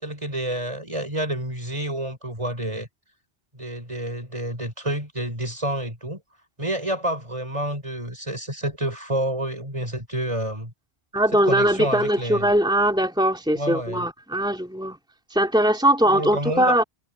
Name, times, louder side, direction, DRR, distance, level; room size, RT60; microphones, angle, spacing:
voice 1, 0.0-2.9 3.5-6.2 6.6-10.7 11.3-12.5 13.6-14.0 16.1-16.9, right 1 dB, 30° right, 5.3 m, -29 dB
voice 2, 11.1-15.0 15.3-16.8, right 1 dB, 5° right, 3.0 m, -21 dB
omnidirectional pair, 1.1 m